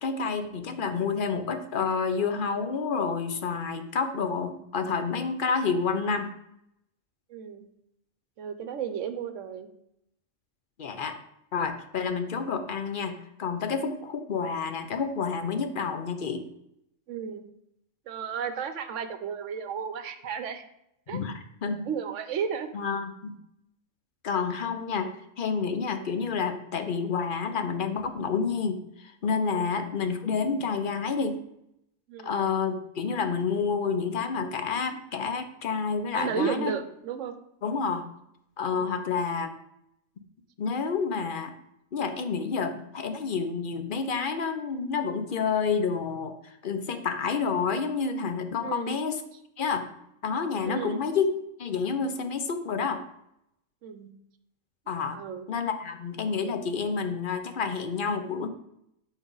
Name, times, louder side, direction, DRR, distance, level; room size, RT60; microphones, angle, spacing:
voice 1, 0.0-6.3 10.8-11.1 11.5-16.4 21.1-21.9 22.7-23.4 24.2-25.1 25.4-31.4 32.2-36.7 37.6-38.1 38.6-39.5 40.6-41.5 41.9-49.2 49.6-49.9 50.2-51.3 51.6-53.0 54.9-55.2 55.5-58.5, left 5 dB, 50° left, 8 dB, 0.7 m, -29 dB
voice 2, 7.3-7.7 8.4-9.7 17.1-17.5 18.1-20.7 21.1-21.2 21.9-22.7 29.5-29.7 32.1-32.3 36.1-37.3 38.8-39.1 48.6-49.0 50.6-51.0 53.8-54.1 55.1-55.5, right 7 dB, 70° right, 9 dB, 1.0 m, -33 dB
11.0 x 4.1 x 3.9 m, 0.79 s
omnidirectional pair, 1.4 m